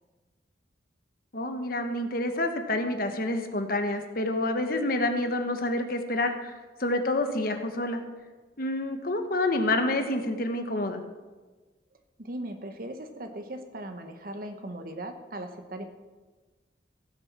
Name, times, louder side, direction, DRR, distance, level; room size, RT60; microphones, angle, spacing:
voice 1, 1.3-6.5 6.8-8.0 8.6-11.0, left 2 dB, 50° left, 6 dB, 1.2 m, -28 dB
voice 2, 12.2-15.8, right 1 dB, 50° right, 6 dB, 1.0 m, -38 dB
15.5 x 7.2 x 5.9 m, 1.3 s
head